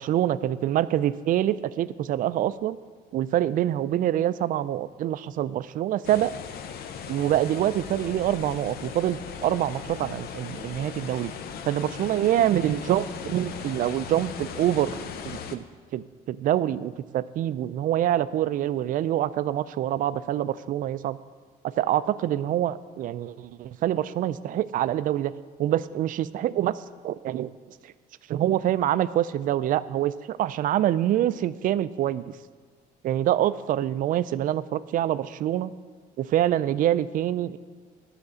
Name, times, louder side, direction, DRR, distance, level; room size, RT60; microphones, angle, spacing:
voice 1, 0.0-2.8 3.1-6.3 7.1-11.3 11.7-14.9 15.5-15.6 15.9-21.2 21.8-25.3 25.6-27.5 28.3-32.3 33.0-35.7 36.2-37.6, right 12 dB, 55° right, 16 dB, 0.4 m, -25 dB
sound 1, 6.0-15.6, left 7 dB, 65° left, 0.7 m, -38 dB
9.7 x 5.8 x 6.4 m, 1.5 s
cardioid pair, 110°, 17 cm